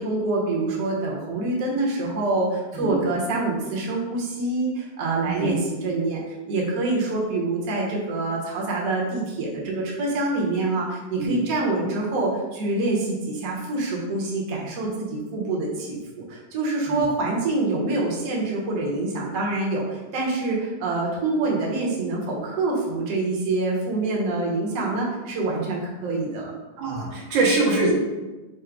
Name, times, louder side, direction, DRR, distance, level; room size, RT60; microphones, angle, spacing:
voice 1, 0.0-26.5, right 2 dB, 55° right, -3 dB, 1.2 m, -26 dB
voice 2, 5.2-5.6 11.2-11.4 16.9-17.0 26.8-27.9, right 3 dB, 80° right, -3 dB, 1.6 m, -23 dB
4.9 x 2.0 x 4.5 m, 1.2 s
omnidirectional pair, 2.1 m